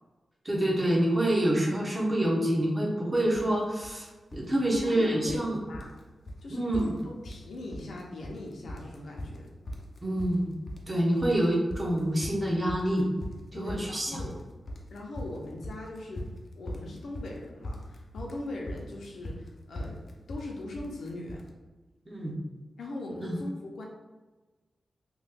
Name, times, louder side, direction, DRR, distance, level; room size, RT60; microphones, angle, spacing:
voice 1, 0.4-4.1 4.3-5.6 6.5-6.9 10.0-10.6 10.9-13.1 13.5-14.2 22.1-22.3 23.2-23.4, right 1 dB, 20° right, -3 dB, 0.6 m, -27 dB
sound 1, 3.3-3.5 3.8-4.5 4.7-5.5 5.7-6.0 6.3-6.4 6.7-7.5 7.7-8.4 8.7-21.5, left 1 dB, 40° left, 0.4 m, -40 dB
voice 2, 4.7-5.9 6.4-9.5 13.5-14.4 14.9-16.3 16.5-21.4 22.8-23.9, left 2 dB, 85° left, -1 dB, 0.6 m, -40 dB
3.0 x 2.3 x 3.3 m, 1.2 s
wide cardioid pair, 160°, 0 cm